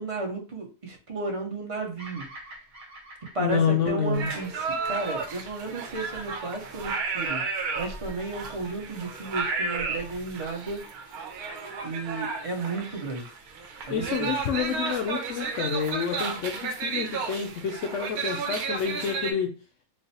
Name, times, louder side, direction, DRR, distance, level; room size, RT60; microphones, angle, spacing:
voice 1, 0.0-2.3 3.3-7.5 7.7-10.8 11.8-13.3 13.8-14.3, right 2 dB, 30° right, 1 dB, 0.6 m, -33 dB
Bird vocalization bird call bird song, 2.0-6.3, right 1 dB, 55° right, 1.4 m, -48 dB
voice 2, 3.4-4.3 13.9-19.5, left 6 dB, 70° left, 5 dB, 0.8 m, -28 dB
sound 1, 4.1-19.3, right 4 dB, 80° right, 1.2 m, -33 dB
3.2 x 2.0 x 4.1 m, 0.35 s
omnidirectional pair, 1.6 m